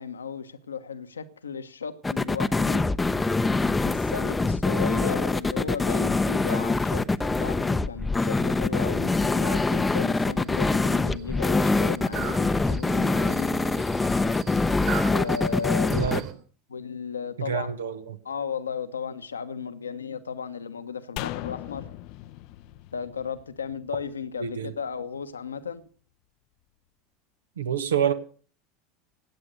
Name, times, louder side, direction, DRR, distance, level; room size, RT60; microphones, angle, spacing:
voice 1, 0.0-2.8 3.8-13.5 15.1-16.0 16.7-17.7 18.2-21.9 22.9-25.8, left 6 dB, 80° left, 1.2 m, -35 dB
sound 1, 2.0-16.2, left 3 dB, 15° left, 0.7 m, -24 dB
sound 2, 9.3-16.3, right 11 dB, 50° right, 3.6 m, -42 dB
voice 2, 15.9-16.2 17.4-18.2 24.4-24.7 27.6-28.1, right 8 dB, 75° right, 1.2 m, -27 dB
sound 3, 21.2-24.5 24.8-24.9, left 17 dB, 55° left, 0.6 m, -38 dB
17.0 x 9.6 x 6.7 m
figure-of-eight pair, 75°, 0 cm